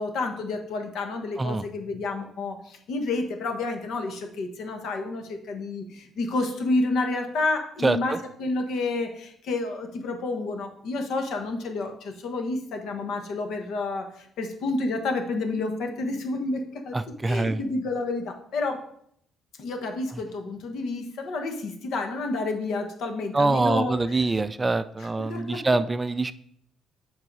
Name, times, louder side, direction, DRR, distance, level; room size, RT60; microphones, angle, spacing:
voice 1, 0.0-16.9 17.3-18.8 19.6-24.3 25.0-25.6, left 3 dB, 70° left, 5 dB, 1.3 m, -30 dB
voice 2, 7.8-8.2 16.9-17.6 23.3-26.3, right 3 dB, 20° right, 13 dB, 0.3 m, -24 dB
7.6 x 4.7 x 4.8 m, 0.69 s
cardioid pair, 105°, 0 cm